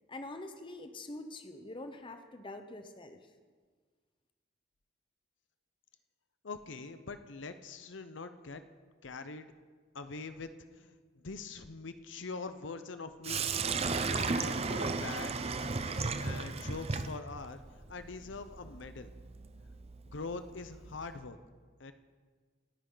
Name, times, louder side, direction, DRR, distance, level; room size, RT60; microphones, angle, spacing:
voice 1, 0.1-3.2, left 2 dB, 25° left, 7 dB, 0.9 m, -45 dB
voice 2, 6.4-8.6 9.0-9.5 9.9-11.0 11.2-15.3 16.2-17.6 17.9-19.1 20.1-21.4 21.8-21.9, left 4 dB, 75° left, 10 dB, 0.8 m, -43 dB
Sink (filling or washing), 13.2-21.2, right 4 dB, 35° right, 0.7 m, -36 dB
26.5 x 10.0 x 3.9 m, 1.5 s
head